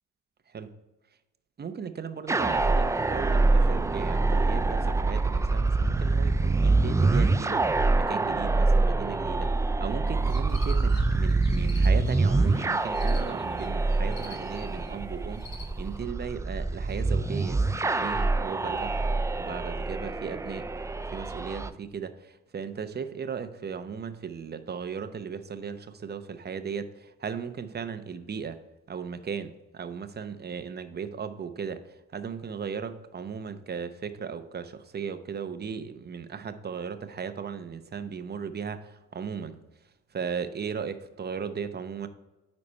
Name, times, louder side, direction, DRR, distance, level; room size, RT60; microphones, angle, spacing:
voice 1, 1.6-7.6 8.0-9.5 9.8-19.0 19.4-28.6 28.9-39.6 40.1-42.1, right 6 dB, 35° right, 10 dB, 0.7 m, -36 dB
sound 1, 2.3-21.7, right 3 dB, 10° right, 0.3 m, -25 dB
sound 2, 10.1-16.0, left 4 dB, 60° left, 1.9 m, -49 dB
9.8 x 4.2 x 4.3 m, 1.1 s
cardioid pair, 90°, 30 cm